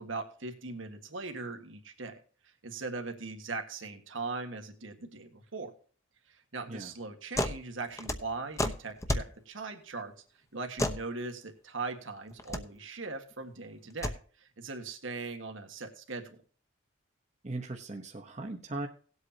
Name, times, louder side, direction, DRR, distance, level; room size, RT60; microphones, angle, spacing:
voice 1, 0.0-2.2 2.6-5.7 6.3-10.1 10.5-16.3, right 3 dB, 80° right, 5 dB, 1.7 m, -40 dB
sound 1, 7.4-7.6 7.9-9.3 10.8-11.0 12.3-12.6 13.9-14.2, left 1 dB, 15° left, 0.9 m, -31 dB
voice 2, 17.4-18.9, right 2 dB, 35° right, 2 dB, 1.0 m, -38 dB
18.0 x 8.1 x 2.8 m, 0.42 s
head